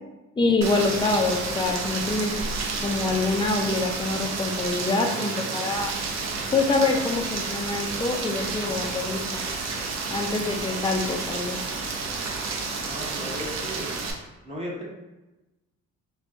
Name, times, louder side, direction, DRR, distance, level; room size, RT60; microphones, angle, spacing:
voice 1, 0.4-2.4 2.8-5.9 6.5-9.4 10.1-11.6, left 3 dB, 15° left, 1 dB, 0.5 m, -25 dB
Rain, 0.6-14.1, right 4 dB, 60° right, 0.6 m, -30 dB
voice 2, 12.9-13.9 14.4-14.8, equal, 20° right, -4 dB, 1.0 m, -35 dB
4.0 x 2.3 x 2.6 m, 1.0 s
cardioid pair, 90°, 30 cm